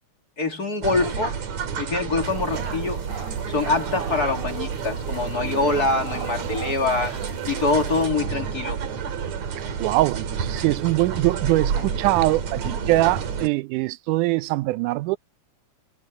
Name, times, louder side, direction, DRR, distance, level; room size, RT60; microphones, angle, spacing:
voice 1, 0.4-1.4 1.8-3.0 3.5-7.2 7.4-8.8, left 3 dB, 35° left, 2.5 m, -24 dB
sound 1, 0.8-13.5, right 6 dB, 60° right, 3.4 m, -29 dB
sound 2, 2.2-8.1, right 4 dB, 35° right, 5.1 m, -41 dB
voice 2, 9.6-15.2, right 19 dB, 85° right, 2.1 m, -23 dB
omnidirectional pair, 3.6 m